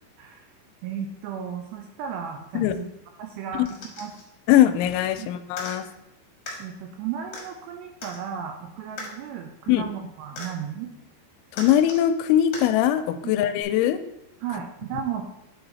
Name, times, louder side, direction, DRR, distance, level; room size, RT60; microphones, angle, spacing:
voice 1, 0.8-2.9 3.2-3.7 4.0-4.1 5.2-5.3 6.6-10.9 13.2-13.4 14.4-15.2, right 8 dB, 85° right, 4 dB, 2.5 m, -34 dB
sound 1, 3.6-4.2 5.5-5.8 6.5-6.6 7.3-7.4 8.0-8.2 9.0-9.1 10.4-10.5 11.5-12.0 12.5-12.7 13.6-13.7, left 3 dB, 60° left, 1.6 m, -37 dB
voice 2, 4.5-5.8 9.7-9.8 11.5-14.0, left 11 dB, 90° left, 10 dB, 3.0 m, -21 dB
9.9 x 4.0 x 4.0 m, 0.85 s
omnidirectional pair, 5.3 m